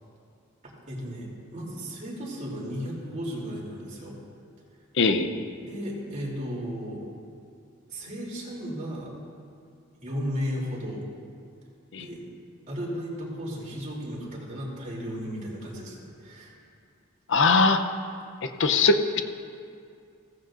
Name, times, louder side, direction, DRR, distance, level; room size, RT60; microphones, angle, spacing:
voice 1, 0.9-4.2 5.6-7.0 7.9-9.1 10.0-11.0 11.9-12.2 12.7-16.5, equal, 40° right, -4 dB, 3.2 m, -34 dB
voice 2, 5.0-5.4 11.9-12.0 17.3-17.8 18.6-19.2, left 3 dB, 65° left, 7 dB, 0.8 m, -21 dB
16.0 x 14.5 x 2.6 m, 2.4 s
head